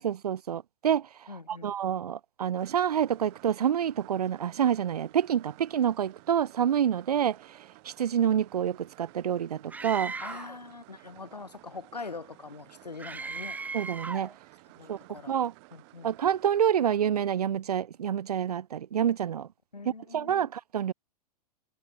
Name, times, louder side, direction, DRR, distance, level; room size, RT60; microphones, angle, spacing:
voice 1, 0.0-1.1 1.5-7.4 7.9-10.1 13.7-14.3 14.9-15.0 15.3-15.5 16.0-19.5 20.1-20.9, right 9 dB, 75° right, 0.5 m, -27 dB
voice 2, 1.3-1.7 10.2-13.6 14.8-15.3 15.7-16.1 19.7-20.5, left 4 dB, 85° left, 2.3 m, -43 dB
sound 1, 2.6-16.7, right 31 dB, 45° right, 3.2 m, -55 dB
Screaming, 9.7-10.6 13.0-14.4, right 4 dB, 10° right, 0.7 m, -37 dB
figure-of-eight pair, 100°, 20 cm